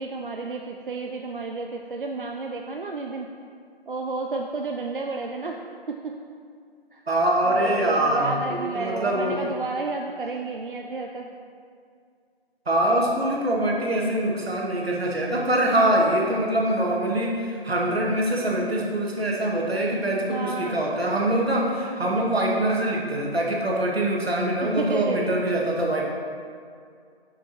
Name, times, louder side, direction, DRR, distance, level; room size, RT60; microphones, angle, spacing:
voice 1, 0.0-3.3 3.9-5.6 5.9-6.2 6.9-7.0 7.5-11.3 20.3-20.9 24.6-25.4, right 3 dB, 55° right, 2 dB, 0.5 m, -31 dB
voice 2, 7.1-9.4 12.7-26.1, right 1 dB, 75° right, -2 dB, 1.6 m, -24 dB
6.2 x 5.5 x 4.2 m, 2.2 s
figure-of-eight pair, 165°, 31 cm